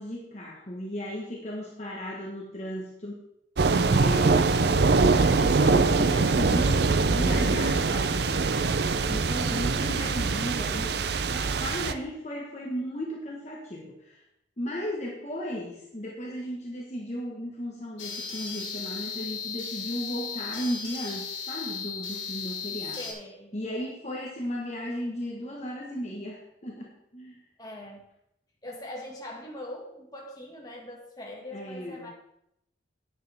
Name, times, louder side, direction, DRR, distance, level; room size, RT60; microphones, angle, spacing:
voice 1, 0.0-3.2 3.8-14.2 14.6-23.0 23.5-27.4 31.5-32.1, equal, 35° left, -3 dB, 1.4 m, -35 dB
sound 1, 3.6-11.9, right 4 dB, 60° right, 0.5 m, -23 dB
sound 2, 18.0-23.1, left 6 dB, 85° left, 3.1 m, -36 dB
voice 2, 23.0-23.5 27.6-28.0 28.6-32.1, left 1 dB, 20° left, -2 dB, 1.9 m, -41 dB
10.5 x 9.4 x 3.5 m, 0.79 s
head